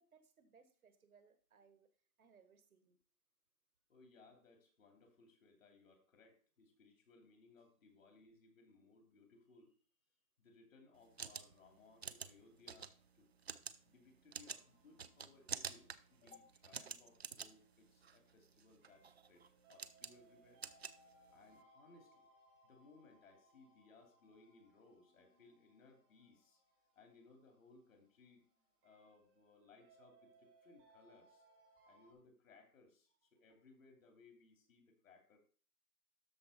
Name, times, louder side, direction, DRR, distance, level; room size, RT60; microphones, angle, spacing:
voice 1, 0.0-1.9 2.2-3.0, right 5 dB, 65° right, 10 dB, 1.6 m, -68 dB
voice 2, 3.9-9.8 10.4-13.3 13.8-20.6 21.3-22.3 22.6-26.6 26.9-28.4 28.8-31.4 31.9-35.4, left 3 dB, 55° left, 3 dB, 2.9 m, -65 dB
sound 1, 10.9-21.6, right 6 dB, 45° right, 0.5 m, -50 dB
sound 2, 14.3-32.1, right 2 dB, 5° right, 0.9 m, -71 dB
12.5 x 4.5 x 4.2 m, 0.42 s
hypercardioid pair, 165°, 46 cm